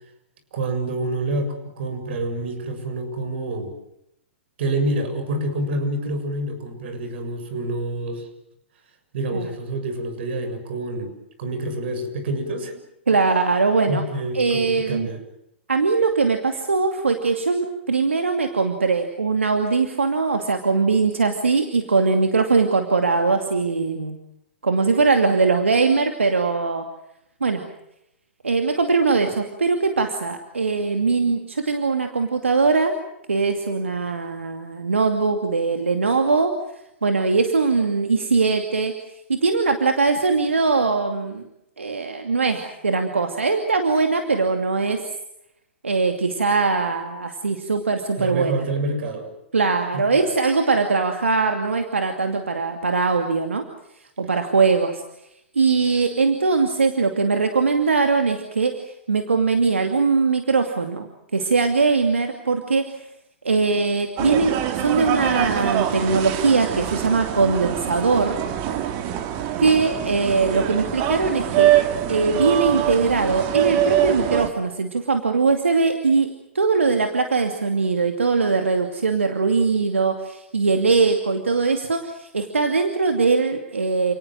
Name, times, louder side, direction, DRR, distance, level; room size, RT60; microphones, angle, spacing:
voice 1, 0.5-3.7 4.6-8.3 9.1-11.1 11.4-12.8 13.9-15.2 48.2-49.3 49.9-50.2, right 2 dB, 60° right, 8 dB, 7.1 m, -27 dB
voice 2, 13.1-14.0 14.3-15.1 15.7-24.2 24.6-26.8 27.4-27.6 28.4-32.9 33.3-36.5 37.0-38.9 39.3-41.4 41.8-45.0 45.8-48.6 49.5-53.6 54.2-55.0 55.6-58.7 59.1-62.9 63.4-68.4 69.6-71.7 72.1-76.3 76.5-84.1, right 4 dB, 90° right, 5 dB, 2.5 m, -21 dB
sound 1, 64.2-74.5, right 12 dB, 40° right, 2.8 m, -24 dB
29.5 x 19.0 x 7.8 m, 0.79 s
hypercardioid pair, 115°, 7 cm